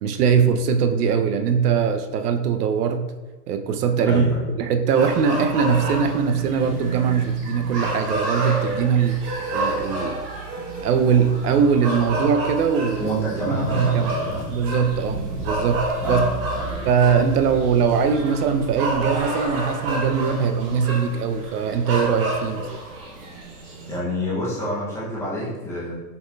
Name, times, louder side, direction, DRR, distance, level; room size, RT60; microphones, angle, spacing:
voice 1, 0.0-3.1 3.5-4.3 4.6-9.2 9.5-10.2 10.8-13.2 13.5-14.1 14.5-16.3 16.8-22.7, right 6 dB, 70° right, 7 dB, 0.6 m, -21 dB
voice 2, 4.0-4.4 13.0-14.5 16.0-16.3 16.5-16.8 23.9-25.9, equal, 5° left, -9 dB, 0.5 m, -28 dB
sound 1, 4.9-24.0, right 2 dB, 35° right, 1.1 m, -29 dB
5.7 x 3.9 x 2.3 m, 1.2 s
hypercardioid pair, 150°, 49 cm